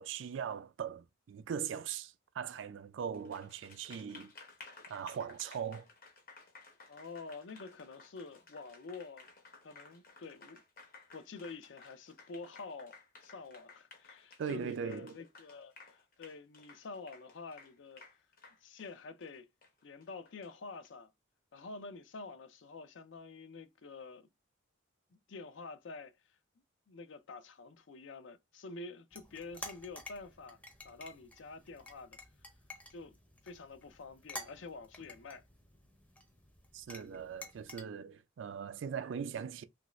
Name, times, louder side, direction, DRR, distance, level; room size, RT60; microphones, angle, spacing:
voice 1, 0.0-4.3 4.9-5.9 14.4-15.2 36.7-39.6, right 7 dB, 65° right, 0.3 m, -40 dB
Applause, 3.1-20.9, left 4 dB, 45° left, 0.9 m, -57 dB
voice 2, 6.9-9.3 9.6-10.6 11.1-18.1 18.6-19.5 19.8-21.1 21.5-24.3 25.1-26.2 26.9-30.6 30.8-32.2 32.9-33.2 33.4-35.4, left 3 dB, 65° left, 0.5 m, -48 dB
sound 1, 29.1-37.8, left 1 dB, 5° left, 0.6 m, -51 dB
3.0 x 2.5 x 3.0 m
head